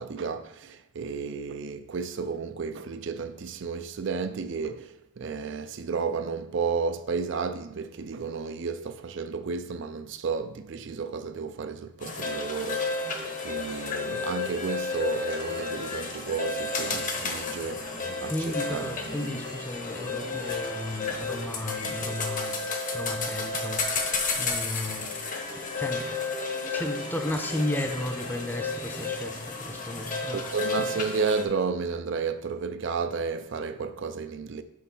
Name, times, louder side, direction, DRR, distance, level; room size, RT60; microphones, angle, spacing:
voice 1, 0.0-19.0 30.3-34.6, right 5 dB, 55° right, 0.5 m, -32 dB
sound 1, 12.0-31.4, left 3 dB, 35° left, 1.0 m, -32 dB
sound 2, 15.0-16.5 16.8-19.0, right 1 dB, 80° right, 2.0 m, -52 dB
sound 3, 17.3-22.3, left 1 dB, 55° left, 1.4 m, -46 dB
voice 2, 18.3-22.5 22.9-25.1 25.8-26.0 26.7-30.4, left 1 dB, 10° left, 0.7 m, -34 dB
6.4 x 5.3 x 5.4 m
head